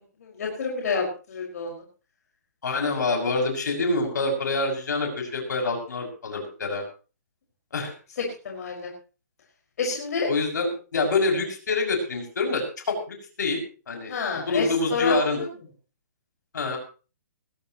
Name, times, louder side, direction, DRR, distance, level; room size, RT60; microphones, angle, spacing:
voice 1, 0.2-1.8 8.2-8.9 9.8-10.3 14.1-15.5, left 4 dB, 60° left, -1 dB, 5.4 m, -29 dB
voice 2, 2.6-6.8 7.7-7.9 10.3-13.6 13.9-15.4 16.5-16.8, left 3 dB, 80° left, 2 dB, 6.6 m, -26 dB
20.5 x 15.0 x 3.1 m, 0.35 s
hypercardioid pair, 155°, 10 cm